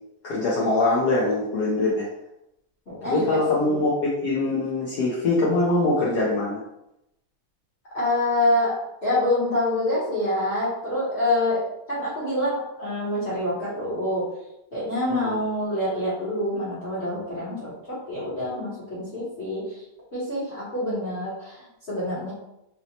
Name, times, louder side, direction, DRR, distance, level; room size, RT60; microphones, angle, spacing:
voice 1, 0.2-2.1 3.0-6.6 15.1-15.4, left 2 dB, 75° left, -5 dB, 0.9 m, -23 dB
voice 2, 2.9-3.8 7.9-11.6 11.9-14.2 14.7-19.8 20.1-22.3, left 1 dB, 50° left, -9 dB, 0.8 m, -26 dB
4.2 x 2.0 x 2.7 m, 0.87 s
omnidirectional pair, 2.3 m